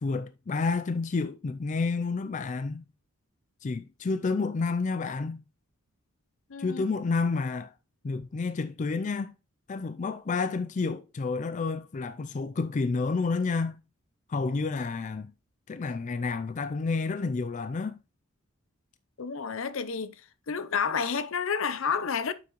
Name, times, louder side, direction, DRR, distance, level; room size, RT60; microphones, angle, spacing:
voice 1, 0.0-2.8 3.6-5.4 6.6-7.7 8.0-9.3 9.7-13.8 14.3-15.3 15.7-18.0, left 4 dB, 35° left, 0.4 m, -30 dB
voice 2, 6.5-6.8 19.2-20.2 20.5-22.3, left 6 dB, 70° left, 0.7 m, -30 dB
7.7 x 5.9 x 3.0 m
head